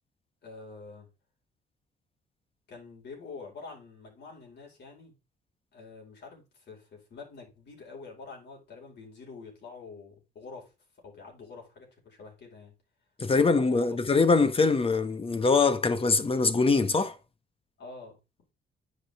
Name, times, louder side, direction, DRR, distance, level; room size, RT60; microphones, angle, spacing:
voice 1, 0.4-1.1 2.7-5.1 5.7-10.7 11.0-12.7 13.3-14.1 17.8-18.2, left 4 dB, 60° left, 5.0 m, -46 dB
voice 2, 13.2-17.2, left 4 dB, 30° left, 1.1 m, -23 dB
9.9 x 5.5 x 3.5 m
cardioid pair, 90°, 20 cm